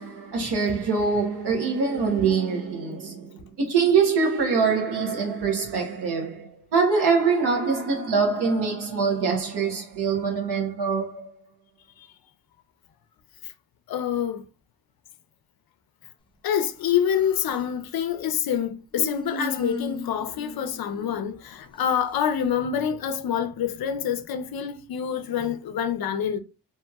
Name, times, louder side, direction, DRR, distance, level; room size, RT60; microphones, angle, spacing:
voice 1, 0.0-11.3, right 5 dB, 85° right, 1.1 m, -24 dB
voice 2, 13.9-14.4 16.4-26.4, left 8 dB, 65° left, 0.5 m, -26 dB
Human voice, 16.8-17.8 18.9-21.7, left 2 dB, 15° left, 0.5 m, -36 dB
2.8 x 2.7 x 2.3 m
wide cardioid pair, 130°, 39 cm